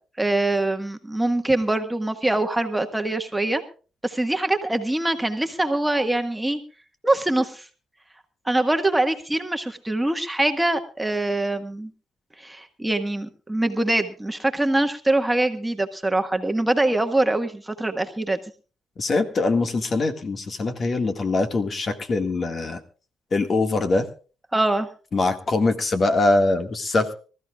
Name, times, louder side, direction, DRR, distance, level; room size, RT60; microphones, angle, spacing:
voice 1, 0.2-3.6 4.0-6.6 7.0-7.7 8.4-11.9 12.4-18.4 24.5-24.9, right 2 dB, 10° right, 6 dB, 1.6 m, -23 dB
voice 2, 19.0-22.8 23.3-24.1 25.1-27.1, left 2 dB, 40° left, 7 dB, 1.8 m, -22 dB
25.0 x 14.0 x 2.4 m, 0.37 s
cardioid pair, 90°, 0 cm